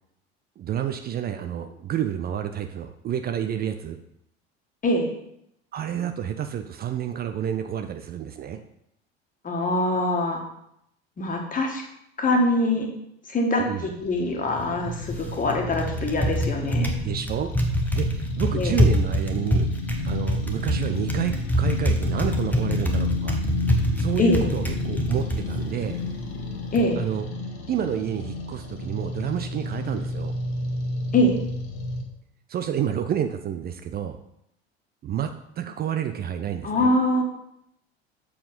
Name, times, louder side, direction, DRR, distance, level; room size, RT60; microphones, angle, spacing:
voice 1, 0.6-4.0 5.7-8.6 13.6-13.9 17.0-17.5 17.9-19.7 20.1-23.4 24.0-26.0 27.0-27.3 27.7-30.3 32.5-34.2 35.0-35.3 35.6-36.9, right 9 dB, 30° right, 7 dB, 0.6 m, -29 dB
voice 2, 9.4-10.4 11.2-11.8 12.2-12.9 13.3-16.9 18.5-18.8 24.2-24.4 26.7-27.0 31.1-31.4 36.6-37.2, left 1 dB, 25° left, 2 dB, 1.8 m, -23 dB
sound 1, 14.0-32.0, left 2 dB, 45° left, 1.5 m, -32 dB
Typing, 14.5-26.9, equal, 5° left, 1.2 m, -26 dB
7.4 x 4.7 x 5.3 m, 0.78 s
figure-of-eight pair, 70°, 31 cm